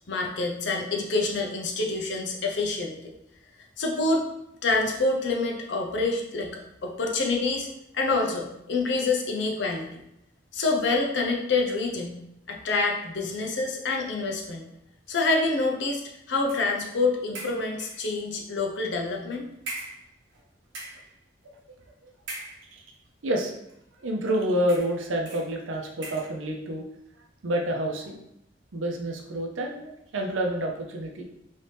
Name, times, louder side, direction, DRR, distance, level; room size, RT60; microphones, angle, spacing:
voice 1, 0.1-2.9 3.8-4.3 4.6-7.7 7.9-10.0 10.5-12.2 12.5-14.6 15.1-19.4, left 3 dB, 65° left, 1 dB, 0.6 m, -27 dB
sound 1, 16.5-16.7 17.3-18.1 18.9-19.1 19.6-20.4 20.7-21.1 22.2-22.9 23.7-23.8 24.7-25.0 25.3-25.5 26.0-26.4, right 2 dB, 70° right, 1.0 m, -40 dB
voice 2, 23.2-23.5 24.0-26.8 27.4-28.2 28.7-31.2, right 1 dB, 90° right, 2 dB, 0.6 m, -28 dB
3.1 x 2.8 x 3.3 m, 0.80 s
head